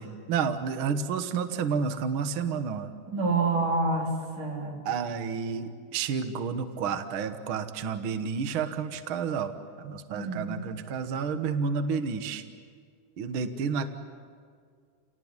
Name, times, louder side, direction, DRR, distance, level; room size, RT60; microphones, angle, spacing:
voice 1, 0.0-2.9 4.8-12.4 13.2-14.1, right 6 dB, 55° right, 9 dB, 1.5 m, -30 dB
voice 2, 3.1-4.8 10.1-10.6, right 3 dB, 75° right, 0 dB, 5.3 m, -28 dB
29.5 x 19.0 x 9.6 m, 2.1 s
omnidirectional pair, 3.6 m